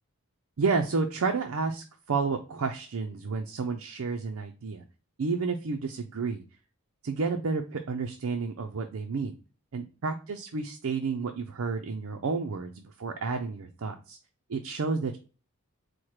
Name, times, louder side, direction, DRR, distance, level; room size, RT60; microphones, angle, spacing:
voice 1, 0.6-4.8 5.2-6.4 7.0-9.3 9.7-14.2 14.5-15.2, right 4 dB, 70° right, 4 dB, 0.5 m, -31 dB
4.4 x 2.1 x 4.7 m, 0.35 s
head